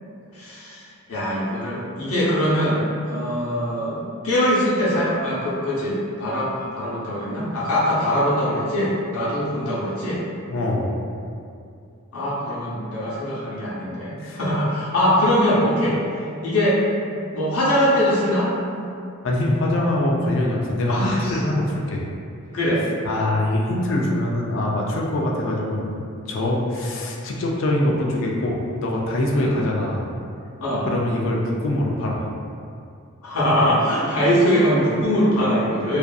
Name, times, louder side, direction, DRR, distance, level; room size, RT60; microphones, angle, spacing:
voice 1, 0.3-10.2 12.1-16.8 17.3-18.5 20.9-21.4 22.5-22.8 29.3-29.5 30.6-30.9 33.2-36.0, equal, 85° left, -8 dB, 0.7 m, -22 dB
voice 2, 10.5-10.9 14.2-14.4 19.2-22.0 23.0-30.1 30.9-32.3, left 1 dB, 60° left, -2 dB, 0.3 m, -23 dB
2.5 x 2.4 x 2.2 m, 2.4 s
head